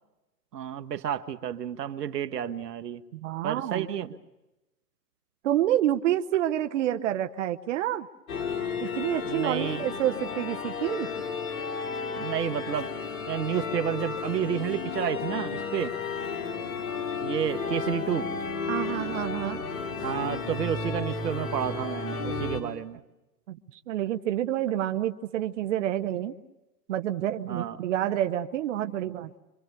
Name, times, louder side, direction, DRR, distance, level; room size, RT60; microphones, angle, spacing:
voice 1, 0.5-3.0 3.4-4.2 9.2-9.8 12.2-12.9 13.3-15.9 17.2-18.3 20.0-23.0 27.5-27.8, right 9 dB, 75° right, 10 dB, 1.5 m, -30 dB
voice 2, 3.1-3.9 5.4-8.1 8.8-11.1 18.7-19.6 23.5-26.3 26.9-29.4, right 12 dB, 50° right, 9 dB, 1.1 m, -28 dB
sound 1, 8.3-22.6, left 5 dB, 55° left, 5.5 m, -33 dB
27.0 x 24.5 x 6.9 m, 1.0 s
hypercardioid pair, 145°, 49 cm